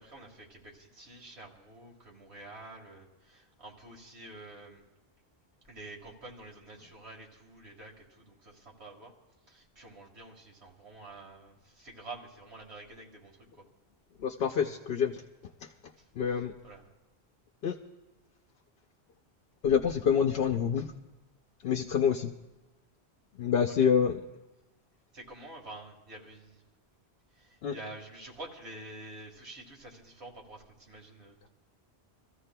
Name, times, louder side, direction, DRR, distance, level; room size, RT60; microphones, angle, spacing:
voice 1, 0.0-4.8 5.7-9.1 9.5-13.4 14.5-14.6 16.0-16.1 16.6-16.8 23.7-23.9 25.1-26.6 27.3-31.5, right 2 dB, 90° right, 0 dB, 2.0 m, -48 dB
voice 2, 14.2-15.2 16.2-16.5 17.6-17.7 19.6-20.9 21.6-22.3 23.4-24.2 27.6-27.8, left 7 dB, 70° left, 3 dB, 0.8 m, -27 dB
27.5 x 14.5 x 2.2 m, 1.1 s
omnidirectional pair, 1.1 m